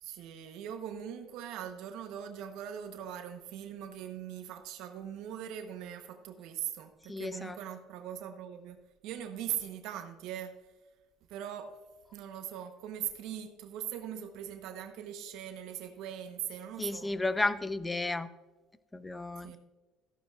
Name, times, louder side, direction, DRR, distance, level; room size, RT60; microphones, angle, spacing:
voice 1, 0.0-8.8 9.0-10.6 11.3-11.8 12.1-17.1 19.4-19.6, right 10 dB, 75° right, 7 dB, 0.9 m, -41 dB
voice 2, 7.1-7.6 16.8-18.3 18.9-19.6, left 2 dB, 15° left, 14 dB, 0.6 m, -33 dB
14.0 x 11.0 x 2.4 m, 1.2 s
cardioid pair, 105°, 0 cm